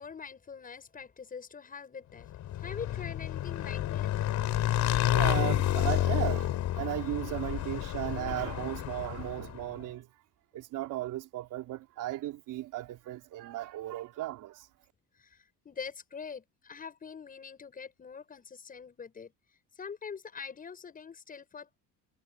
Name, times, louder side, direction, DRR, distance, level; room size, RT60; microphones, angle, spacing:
voice 1, 0.0-4.2 5.5-5.6 15.2-19.3 19.7-21.8, left 6 dB, 25° left, 7.6 m, -44 dB
Motorcycle / Engine, 2.3-9.6, left 13 dB, 50° left, 4.8 m, -30 dB
voice 2, 5.0-10.1 10.5-14.7, right 15 dB, 60° right, 3.7 m, -36 dB
cardioid pair, 165°, 36 cm